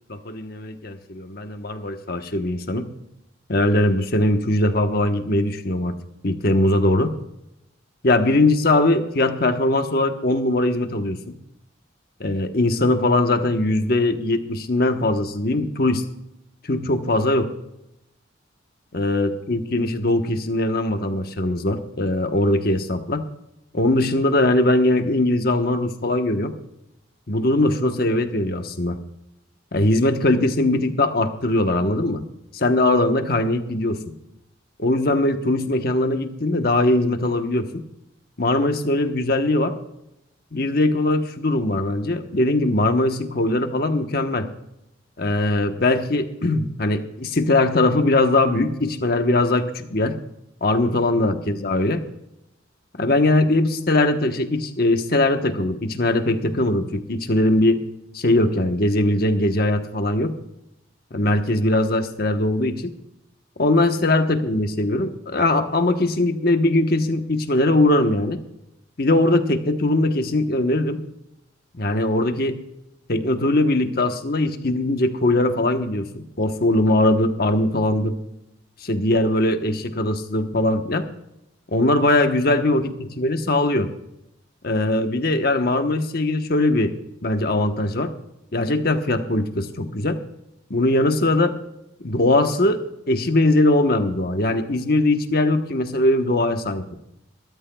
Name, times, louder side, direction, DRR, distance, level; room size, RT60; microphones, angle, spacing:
voice 1, 0.1-2.9 3.5-5.9 6.2-7.1 8.0-11.4 12.2-16.0 16.7-17.5 18.9-23.2 23.7-26.5 27.3-29.0 29.7-32.2 32.5-34.1 34.8-37.8 38.4-39.8 40.5-44.5 45.2-50.2 50.6-52.0 53.0-57.8 58.1-60.3 61.1-62.9 63.6-68.4 69.0-71.0 71.8-72.6 73.1-78.1 78.8-81.1 81.7-83.9 84.6-87.0 87.2-88.1 88.5-90.2 90.7-91.6 92.0-97.0, left 2 dB, 50° left, 6 dB, 1.2 m, -21 dB
24.5 x 13.0 x 2.3 m, 0.84 s
head